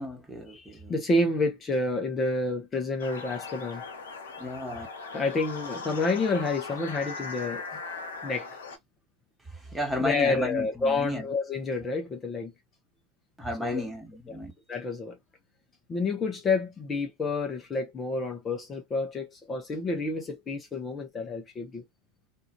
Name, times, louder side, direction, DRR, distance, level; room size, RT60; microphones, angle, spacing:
voice 1, 0.0-0.9 4.4-4.9 9.5-11.3 13.4-14.5, left 1 dB, 5° right, 1.2 m, -33 dB
voice 2, 0.5-3.8 5.1-7.6 8.2-8.5 10.0-12.5 13.6-13.9 14.3-14.4 14.7-15.2 15.9-21.8, left 3 dB, 25° left, 0.7 m, -29 dB
sound 1, 3.0-8.8, left 4 dB, 80° left, 0.9 m, -39 dB
2.7 x 2.4 x 2.3 m
hypercardioid pair, 95°, 0 cm